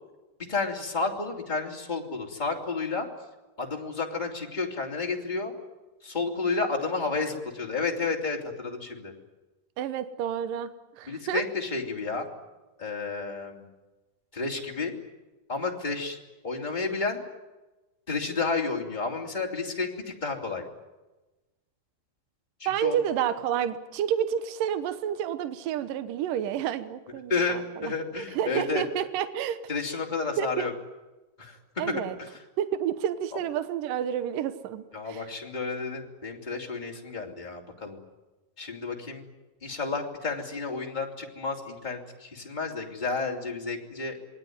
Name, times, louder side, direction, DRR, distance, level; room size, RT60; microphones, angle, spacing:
voice 1, 0.5-3.1 3.6-5.5 6.0-9.1 11.1-12.3 12.8-13.7 14.3-14.9 15.5-16.2 16.4-17.2 18.1-20.6 22.6-23.0 27.3-28.8 29.7-30.7 31.4-31.6 31.9-32.4 34.9-38.0 38.6-39.3 39.6-44.2, left 4 dB, 15° left, 0 dB, 2.8 m, -31 dB
voice 2, 9.8-10.7 11.0-11.4 22.7-29.6 30.4-30.7 31.8-32.2 32.6-34.8 35.1-35.2, right 9 dB, 75° right, 11 dB, 2.7 m, -30 dB
27.0 x 20.5 x 9.5 m, 1.1 s
omnidirectional pair, 4.0 m